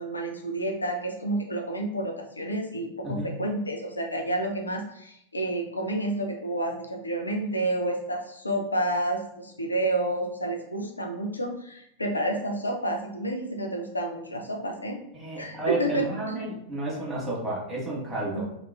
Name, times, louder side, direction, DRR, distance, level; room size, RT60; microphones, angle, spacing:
voice 1, 0.0-15.0 15.4-16.4 18.3-18.4, right 1 dB, 80° left, 2 dB, 0.4 m, -30 dB
voice 2, 15.1-18.4, right 2 dB, 10° right, -5 dB, 1.2 m, -31 dB
2.9 x 2.3 x 2.2 m, 0.74 s
figure-of-eight pair, 90°, 0 cm